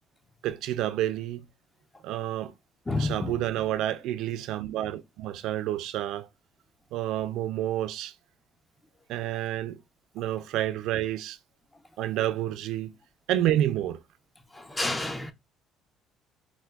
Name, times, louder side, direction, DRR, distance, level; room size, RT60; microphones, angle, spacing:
voice 1, 0.4-1.4 2.0-2.5 3.0-6.3 6.9-8.1 9.1-9.8 10.1-11.4 12.0-12.9 13.3-14.0, right 13 dB, 70° right, 0.3 m, -29 dB
voice 2, 2.9-3.3 14.5-15.3, left 2 dB, 15° left, 0.4 m, -29 dB
4.2 x 2.1 x 2.3 m
cardioid pair, 105°, 0 cm